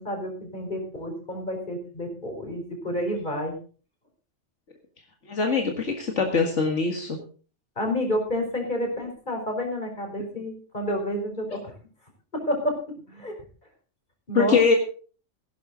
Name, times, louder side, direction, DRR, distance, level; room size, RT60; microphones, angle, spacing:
voice 1, 0.0-3.6 7.8-11.6 12.3-12.8 13.0-13.3 14.3-14.6, equal, 40° left, 2 dB, 4.9 m, -29 dB
voice 2, 5.3-7.2 11.5-11.6 14.3-14.8, left 4 dB, 80° left, 2 dB, 2.2 m, -23 dB
17.0 x 11.5 x 3.9 m, 0.39 s
omnidirectional pair, 1.2 m